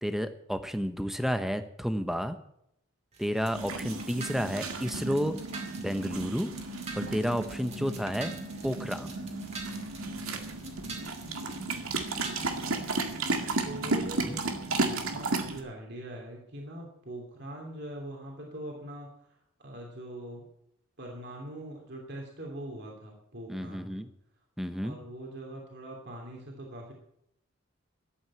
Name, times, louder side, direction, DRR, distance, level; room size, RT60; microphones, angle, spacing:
voice 1, 0.0-2.4 3.2-5.4 5.8-6.5 6.9-8.3 8.6-9.1 14.0-14.4 23.5-24.1 24.6-25.0, equal, ahead, 9 dB, 0.8 m, -31 dB
sound 1, 3.1-13.5, right 4 dB, 30° right, 2.3 m, -47 dB
sound 2, 3.5-15.6, right 3 dB, 90° right, 2.1 m, -34 dB
voice 2, 7.7-8.0 12.2-12.9 13.6-14.4 14.7-19.1 19.6-20.4 21.0-24.0 24.8-26.9, right 1 dB, 50° right, 0 dB, 2.9 m, -42 dB
13.0 x 8.8 x 8.7 m, 0.76 s
head